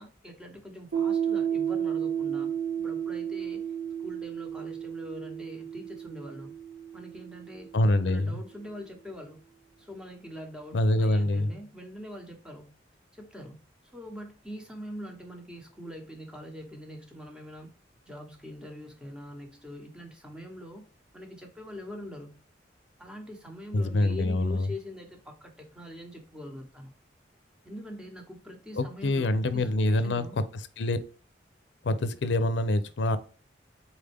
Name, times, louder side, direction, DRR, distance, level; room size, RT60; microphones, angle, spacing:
voice 1, 0.0-3.6 4.0-6.5 6.9-7.7 8.0-9.4 9.8-12.7 13.1-17.7 18.0-20.8 21.1-22.4 23.0-26.9 27.6-30.4, equal, 5° right, 1.0 m, -43 dB
Piano, 0.9-8.2, right 8 dB, 80° right, 1.1 m, -32 dB
voice 2, 7.7-8.3 10.7-11.5 23.7-24.7 28.8-30.3 30.8-31.0 31.8-33.2, left 1 dB, 70° left, 0.5 m, -25 dB
4.3 x 3.6 x 3.4 m
head